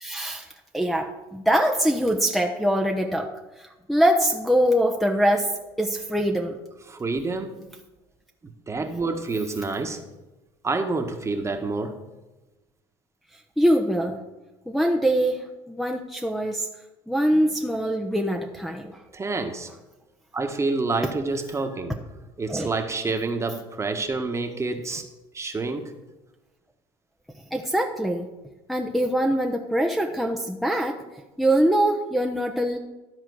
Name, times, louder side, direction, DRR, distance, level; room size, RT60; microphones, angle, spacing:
voice 1, 0.0-3.3 3.6-5.5 5.8-6.6 13.6-14.2 14.7-16.7 17.1-19.0 22.5-22.7 27.5-28.3 28.7-31.0 31.4-32.8, right 1 dB, ahead, 1 dB, 0.9 m, -23 dB
voice 2, 6.9-7.6 8.4-10.0 10.6-12.0 19.1-19.7 20.3-22.0 22.4-25.1 25.3-25.9, right 3 dB, 25° right, 5 dB, 1.5 m, -28 dB
13.0 x 4.4 x 6.3 m, 1.1 s
hypercardioid pair, 75°, 12 cm